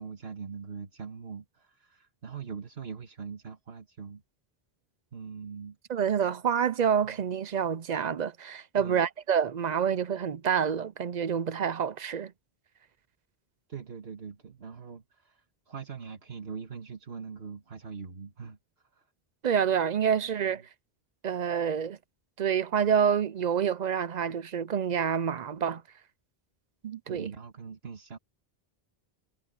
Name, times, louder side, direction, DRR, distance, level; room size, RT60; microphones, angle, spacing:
voice 1, 0.0-4.2 5.1-5.8 7.0-7.2 8.8-9.1 13.7-18.6 18.9-19.1 20.5-20.6 27.1-28.2, right 5 dB, 80° right, 2.0 m, -42 dB
voice 2, 5.9-12.3 19.4-20.6 21.2-22.0 22.4-25.8 26.8-27.3, right 7 dB, 50° right, 0.6 m, -27 dB
omnidirectional pair, 1.0 m